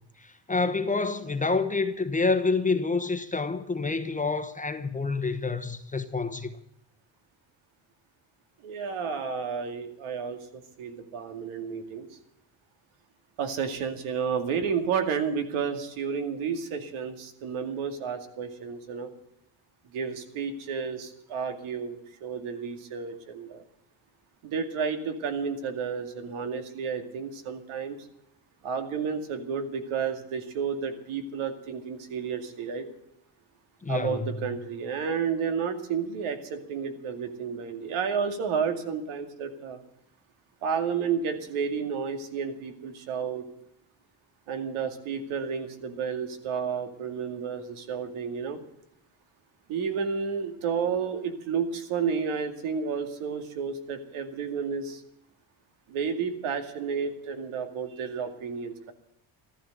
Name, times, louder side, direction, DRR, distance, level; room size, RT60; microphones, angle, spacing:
voice 1, 0.2-6.6 33.8-34.4, left 3 dB, 15° left, 1.1 m, -28 dB
voice 2, 8.6-12.1 13.4-19.1 19.9-23.6 24.4-28.0 28.6-32.9 33.9-39.8 40.6-43.5 44.5-48.6 49.7-55.0 55.9-58.9, right 6 dB, 85° right, 2.4 m, -31 dB
14.0 x 13.0 x 6.7 m
cardioid pair, 125°, 48 cm